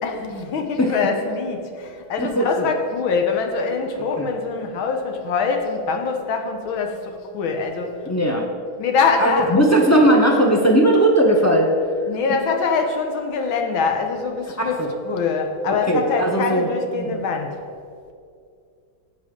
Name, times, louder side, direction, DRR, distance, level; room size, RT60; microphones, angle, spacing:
voice 1, 0.0-8.0 8.8-9.5 12.1-17.6, left 5 dB, 85° left, 4 dB, 1.9 m, -24 dB
voice 2, 2.2-2.7 4.2-4.3 8.1-8.4 9.2-11.8 14.8-14.9 15.7-16.7 17.0-17.2, right 1 dB, 25° left, 0 dB, 0.3 m, -18 dB
14.0 x 8.9 x 3.8 m, 2.3 s
omnidirectional pair, 2.1 m